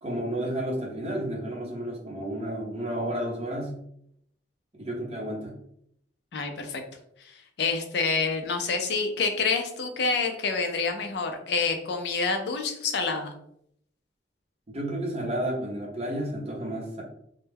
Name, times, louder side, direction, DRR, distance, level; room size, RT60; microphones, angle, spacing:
voice 1, 0.0-3.8 4.7-5.5 14.7-17.0, right 1 dB, 35° right, -1 dB, 0.7 m, -31 dB
voice 2, 6.3-6.8 7.2-13.3, left 4 dB, 65° left, 5 dB, 0.4 m, -27 dB
2.2 x 2.1 x 3.3 m, 0.72 s
head